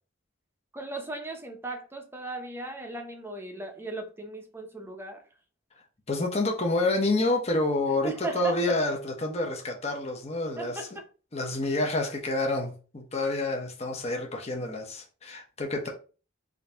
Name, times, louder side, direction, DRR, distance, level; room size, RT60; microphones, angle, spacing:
voice 1, 0.7-5.3 7.9-8.6 10.6-11.1, right 2 dB, 10° right, 0.7 m, -37 dB
voice 2, 6.1-10.8 11.3-15.9, left 2 dB, 35° left, 0.9 m, -28 dB
3.8 x 2.8 x 3.4 m
head